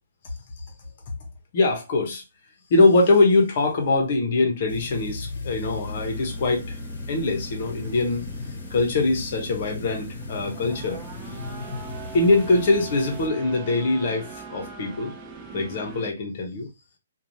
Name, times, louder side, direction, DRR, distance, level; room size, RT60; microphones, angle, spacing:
voice 1, 1.5-2.2 2.7-6.8 7.1-8.2 8.7-11.0 12.1-15.1 15.5-16.7, left 3 dB, 35° left, 0.9 m, -22 dB
sound 1, 4.7-13.3, left 3 dB, 60° left, 0.9 m, -36 dB
sound 2, 5.8-16.1, right 5 dB, 15° right, 0.3 m, -41 dB
3.1 x 2.4 x 2.6 m
hypercardioid pair, 175°, 0 cm